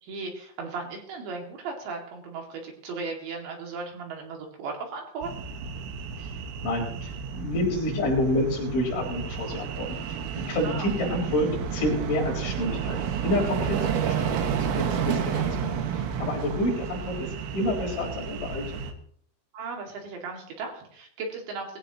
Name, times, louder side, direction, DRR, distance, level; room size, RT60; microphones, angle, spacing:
voice 1, 0.0-5.3 10.6-10.9 13.7-14.0 19.5-21.8, right 4 dB, 65° right, 1 dB, 4.2 m, -36 dB
sound 1, 5.2-18.9, right 7 dB, 85° right, 4.1 m, -31 dB
voice 2, 6.6-10.2 10.5-17.3 17.5-18.8, left 1 dB, 60° left, -2 dB, 6.7 m, -29 dB
20.0 x 16.0 x 3.0 m, 0.62 s
omnidirectional pair, 5.9 m